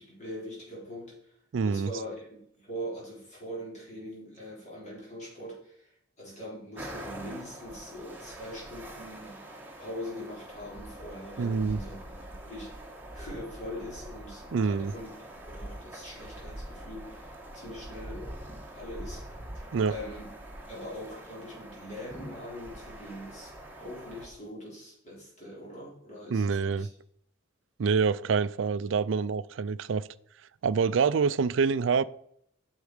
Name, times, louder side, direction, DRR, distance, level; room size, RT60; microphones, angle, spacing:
voice 1, 0.0-1.4 1.6-9.4 9.8-12.7 13.1-15.1 15.4-18.4 18.7-19.2 19.5-20.3 20.7-26.9, equal, 35° left, 4.4 m, -42 dB
voice 2, 1.5-1.9 11.4-11.8 14.5-14.9 19.7-19.9 26.3-26.9 27.8-30.1 30.6-32.0, right 5 dB, 65° right, 0.4 m, -26 dB
sound 1, 6.8-24.3, right 1 dB, 10° right, 1.5 m, -44 dB
8.2 x 7.3 x 5.0 m
head